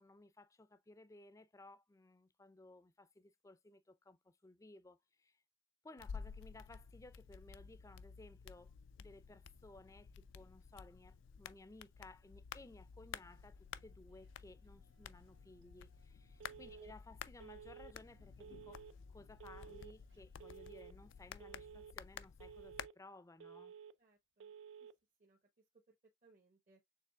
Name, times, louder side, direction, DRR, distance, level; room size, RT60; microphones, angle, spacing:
voice 1, 0.0-5.4 5.8-18.8 19.1-23.7, left 2 dB, 15° left, 0.4 m, -59 dB
sound 1, 6.0-22.9, left 7 dB, 80° left, 0.4 m, -53 dB
sound 2, 13.2-21.9, right 1 dB, 70° right, 1.7 m, -70 dB
Telephone, 16.4-16.9 17.4-17.9 18.4-18.9 19.4-19.9 20.4-20.9 21.4-21.9 22.4-22.9 23.4-23.9 24.4-24.9, right 7 dB, 85° right, 0.4 m, -54 dB
voice 2, 24.0-24.5 24.8-24.9 25.2-25.9 26.2-26.8, right 3 dB, 45° right, 0.9 m, -70 dB
6.7 x 3.2 x 2.2 m
head